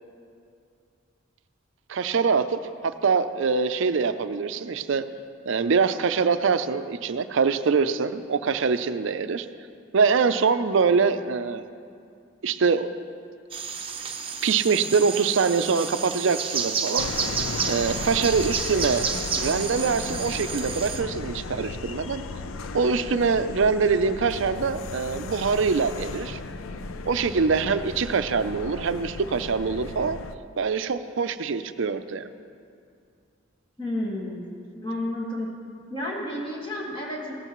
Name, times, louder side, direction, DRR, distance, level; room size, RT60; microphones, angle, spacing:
voice 1, 1.9-5.0 5.5-9.5 9.9-11.6 12.4-12.9 14.4-17.1 17.7-22.2 22.7-26.4 27.0-30.2 30.6-32.3, right 5 dB, 65° right, 11 dB, 0.5 m, -24 dB
sound 1, 13.5-21.0, right 6 dB, 25° right, 0.8 m, -31 dB
sound 2, 17.0-30.4, left 3 dB, 85° left, 0.5 m, -35 dB
voice 2, 33.8-34.4 34.8-35.5 35.9-37.3, left 1 dB, 25° left, -4 dB, 1.7 m, -31 dB
17.5 x 13.5 x 3.1 m, 2.4 s
head